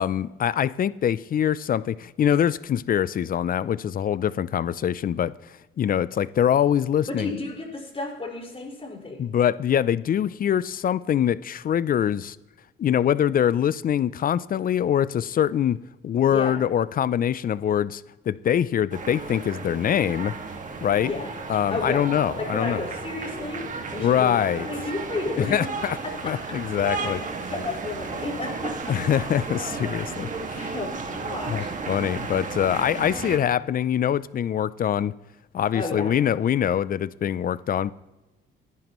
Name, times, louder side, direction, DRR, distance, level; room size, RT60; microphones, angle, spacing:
voice 1, 0.0-5.3 5.8-7.3 9.2-12.4 12.8-20.3 20.8-21.1 21.5-22.8 24.0-24.7 25.4-26.0 26.2-27.2 28.9-30.3 30.6-30.7 31.5-35.1 35.5-37.9, left 9 dB, 45° left, 0.4 m, -24 dB
voice 2, 7.0-9.4 16.3-16.6 21.0-21.3 21.7-22.1 22.4-25.7 26.2-26.3 26.7-28.9 30.5-31.7 35.7-36.1, left 3 dB, 30° left, 5.0 m, -32 dB
sound 1, 18.9-33.4, right 4 dB, 40° right, 2.0 m, -34 dB
19.0 x 11.5 x 3.1 m
cardioid pair, 90°, 20 cm